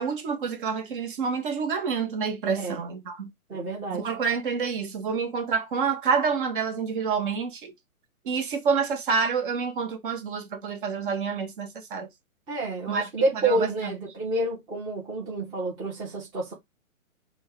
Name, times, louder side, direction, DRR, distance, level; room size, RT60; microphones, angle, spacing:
voice 1, 0.0-3.3 3.9-7.7 8.2-12.1 12.9-13.7, right 5 dB, 35° right, 1.0 m, -28 dB
voice 2, 3.5-4.1 12.5-16.5, right 2 dB, 10° right, 0.8 m, -29 dB
4.4 x 2.3 x 4.3 m
hypercardioid pair, 155°, 43 cm